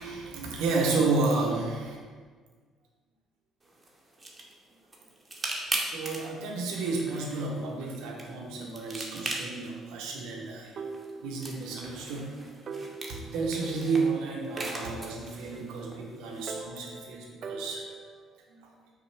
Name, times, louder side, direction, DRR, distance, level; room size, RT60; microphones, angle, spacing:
voice 1, 0.0-2.0 5.9-10.7 11.2-12.4 13.1-17.8 18.5-18.7, right 3 dB, 70° right, -1 dB, 0.8 m, -31 dB
sound 1, 3.6-16.6, right 2 dB, 20° right, 0.9 m, -41 dB
sound 2, 10.8-11.9 12.2-12.3 12.7-14.2 14.6-16.0 16.5-18.3, right 4 dB, 50° right, 0.3 m, -42 dB
5.5 x 2.2 x 4.5 m, 1.5 s
hypercardioid pair, 50°, 0 cm